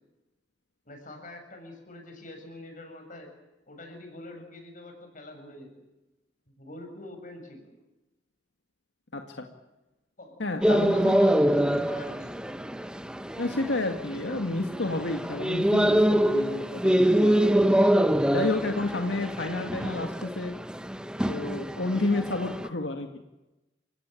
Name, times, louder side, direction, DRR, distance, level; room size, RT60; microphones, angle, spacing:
voice 1, 0.9-3.3 3.7-5.8 6.6-7.7 10.2-10.4 10.8-12.4, left 1 dB, 50° left, 4 dB, 7.1 m, -45 dB
voice 2, 9.1-9.5 10.4-11.2 13.4-17.6 18.3-20.6 21.3-23.2, left 2 dB, 90° left, 4 dB, 2.1 m, -30 dB
sound 1, 10.6-22.7, right 1 dB, 5° right, 0.9 m, -25 dB
29.0 x 17.5 x 9.1 m, 1.0 s
head